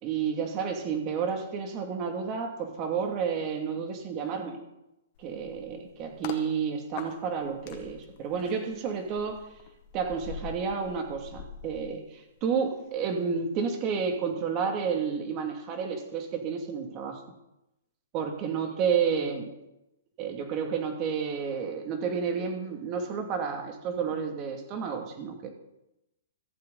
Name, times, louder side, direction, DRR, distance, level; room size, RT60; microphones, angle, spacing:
voice 1, 0.0-4.6 5.2-9.4 9.9-17.2 18.1-19.5 20.2-25.5, right 6 dB, 30° right, 4 dB, 2.5 m, -31 dB
sound 1, 5.2-6.4 7.0-12.5 12.9-13.1, left 7 dB, 40° left, 1.9 m, -45 dB
14.5 x 14.0 x 4.1 m, 0.90 s
hypercardioid pair, 150°, 0 cm